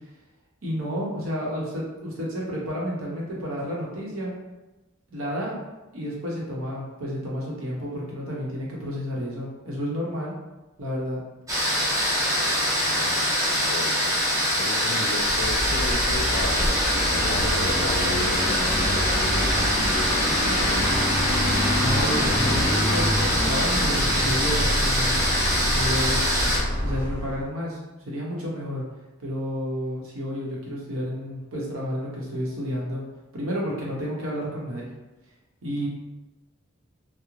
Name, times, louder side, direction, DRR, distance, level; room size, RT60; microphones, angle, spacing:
voice 1, 0.6-4.3 5.1-5.6 5.9-10.3 10.8-11.2 21.5-25.2 25.7-26.2 26.8-27.8 28.0-28.8 29.2-33.0 33.3-34.9 35.6-35.9, equal, 75° right, -4 dB, 0.8 m, -31 dB
sound 1, 11.5-26.6, equal, 15° right, 0.6 m, -24 dB
voice 2, 12.4-14.2 14.6-21.1, left 3 dB, 65° left, 5 dB, 0.3 m, -36 dB
Vehicle, 15.2-27.4, equal, 30° left, 0.7 m, -26 dB
2.4 x 2.0 x 3.0 m, 1.1 s
head